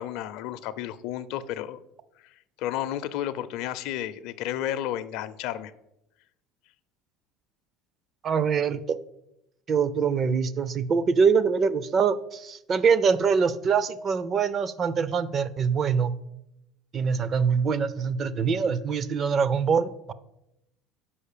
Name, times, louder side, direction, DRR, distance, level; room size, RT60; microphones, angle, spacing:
voice 1, 0.0-1.8 2.6-5.7, left 12 dB, 70° left, 12 dB, 0.5 m, -32 dB
voice 2, 8.2-9.0 9.7-16.2 16.9-20.1, right 6 dB, 35° right, 16 dB, 0.4 m, -24 dB
5.6 x 5.1 x 6.7 m, 0.86 s
cardioid pair, 130°, 0 cm